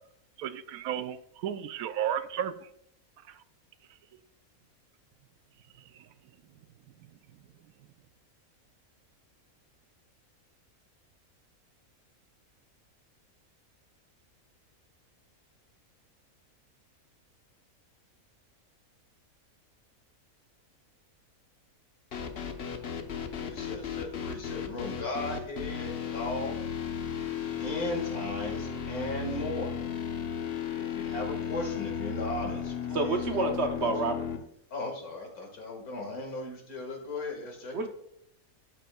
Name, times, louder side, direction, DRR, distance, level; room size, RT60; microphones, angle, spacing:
voice 1, 0.4-2.7 3.3-3.4 5.8-6.1, right 10 dB, 80° right, 12 dB, 1.1 m, -34 dB
sound 1, 22.1-34.4, left 7 dB, 50° left, 1.0 m, -35 dB
voice 2, 23.4-26.5 27.6-29.7 30.8-33.6 33.8-33.9 34.7-37.8, left 2 dB, 85° left, 2 dB, 2.4 m, -37 dB
voice 3, 32.9-34.3 37.7-37.9, right 3 dB, 55° right, 5 dB, 1.1 m, -29 dB
12.0 x 9.1 x 2.3 m, 0.75 s
omnidirectional pair, 1.5 m